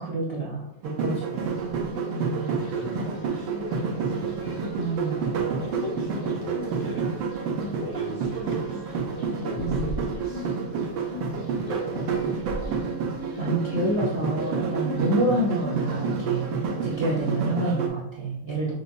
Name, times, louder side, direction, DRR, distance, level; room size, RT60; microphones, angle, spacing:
voice 1, 0.0-1.2 2.1-2.5 4.7-5.3 9.6-10.0 13.4-18.7, right 1 dB, 60° right, -6 dB, 0.6 m, -28 dB
sound 1, 0.8-17.9, right 5 dB, 80° right, 1.5 m, -29 dB
sound 2, 1.0-17.5, left 3 dB, 30° left, 0.8 m, -42 dB
voice 2, 1.3-1.7 2.7-4.8 5.4-12.9 15.1-15.3, left 2 dB, 85° left, 0 dB, 0.7 m, -40 dB
6.2 x 2.8 x 2.6 m, 0.90 s
omnidirectional pair, 2.1 m